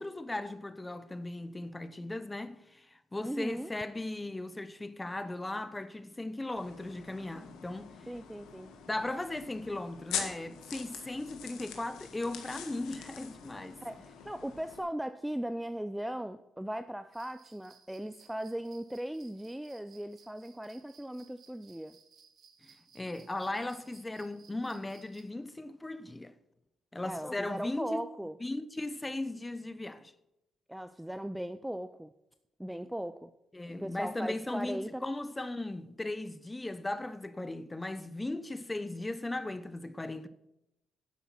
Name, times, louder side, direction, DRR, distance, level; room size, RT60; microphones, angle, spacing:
voice 1, 0.0-7.9 8.9-13.8 22.6-26.3 26.9-28.0 28.4-30.1 33.5-40.3, left 2 dB, 15° left, 0.9 m, -37 dB
voice 2, 3.2-3.7 8.1-8.7 13.8-22.0 27.1-28.4 30.7-32.1 32.6-33.3 33.8-35.0, right 1 dB, 5° right, 0.5 m, -38 dB
sound 1, 6.6-14.8, left 8 dB, 90° left, 1.7 m, -44 dB
sound 2, 17.1-25.2, right 6 dB, 60° right, 1.5 m, -61 dB
10.5 x 8.1 x 5.7 m
cardioid pair, 90°, 0 cm